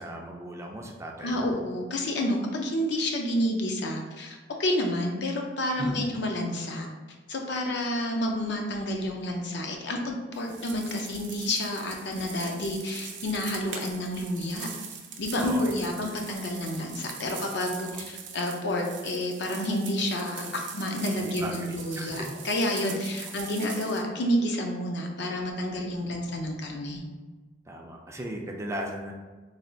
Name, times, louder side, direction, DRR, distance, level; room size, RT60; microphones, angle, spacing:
voice 1, 0.0-1.5 5.8-6.0 15.4-15.7 21.1-22.3 22.9-23.0 27.7-29.1, right 1 dB, 15° right, 1 dB, 0.4 m, -36 dB
voice 2, 1.2-6.9 7.3-14.7 15.2-27.0, left 1 dB, 65° left, 2 dB, 0.6 m, -29 dB
sound 1, 10.3-24.0, right 6 dB, 70° right, 0.5 m, -42 dB
3.3 x 2.4 x 3.9 m, 1.3 s
head